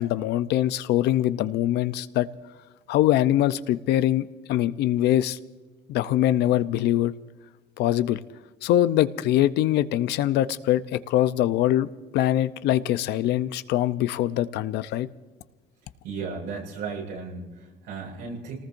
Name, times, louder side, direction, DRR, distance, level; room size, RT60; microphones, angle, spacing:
voice 1, 0.0-2.3 2.9-5.4 5.9-7.1 7.8-8.2 8.6-15.1, left 13 dB, 80° left, 13 dB, 0.7 m, -23 dB
voice 2, 16.0-18.6, right 5 dB, 85° right, -3 dB, 7.8 m, -35 dB
29.0 x 19.0 x 2.6 m, 1.2 s
cardioid pair, 110°, 17 cm